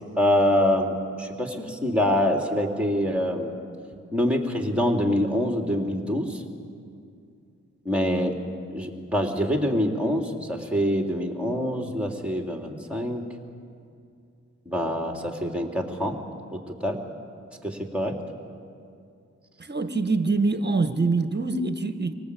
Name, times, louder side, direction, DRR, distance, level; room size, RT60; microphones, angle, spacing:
voice 1, 0.2-3.5 4.1-6.4 7.8-8.3 8.7-13.2 14.6-16.2 16.5-17.0 17.6-18.1, left 1 dB, 5° right, 2 dB, 3.5 m, -25 dB
voice 2, 19.6-22.1, right 3 dB, 35° right, 9 dB, 1.5 m, -24 dB
25.5 x 18.5 x 8.6 m, 2.4 s
cardioid pair, 60°, 30 cm